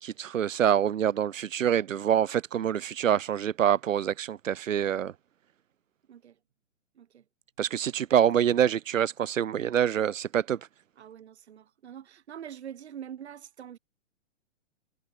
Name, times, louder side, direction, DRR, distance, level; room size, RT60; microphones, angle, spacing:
voice 1, 0.0-5.1 7.6-10.6, right 9 dB, 85° right, 0.9 m, -26 dB
voice 2, 6.1-6.4 6.9-7.2 11.0-13.8, right 9 dB, 60° right, 3.8 m, -44 dB
hypercardioid pair, 155°, 38 cm